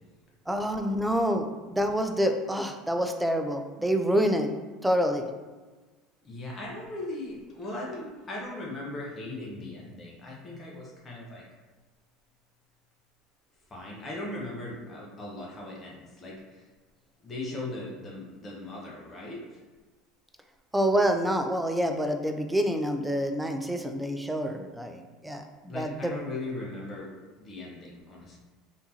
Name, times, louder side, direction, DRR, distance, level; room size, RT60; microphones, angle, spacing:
voice 1, 0.5-4.5 4.8-5.3 20.7-26.2, equal, 5° right, 5 dB, 0.4 m, -27 dB
voice 2, 6.2-11.4 13.7-16.6 17.2-19.4 25.7-27.1 27.4-28.4, left 2 dB, 30° left, -3 dB, 1.0 m, -38 dB
3.5 x 2.9 x 2.7 m, 1.3 s
hypercardioid pair, 80°, 0 cm